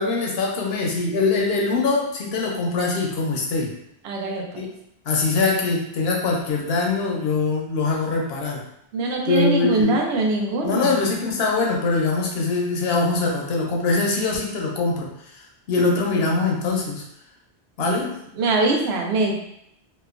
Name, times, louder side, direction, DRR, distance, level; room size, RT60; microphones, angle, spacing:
voice 1, 0.0-3.7 4.5-4.7 5.1-8.6 9.3-10.0 10.6-15.1 15.3-17.0 17.8-18.2, left 3 dB, 75° left, -1 dB, 0.8 m, -23 dB
voice 2, 4.0-4.7 8.9-10.9 17.8-18.1 18.4-19.3, right 2 dB, 85° right, 0 dB, 0.8 m, -23 dB
2.8 x 2.2 x 2.4 m, 0.76 s
omnidirectional pair, 1.1 m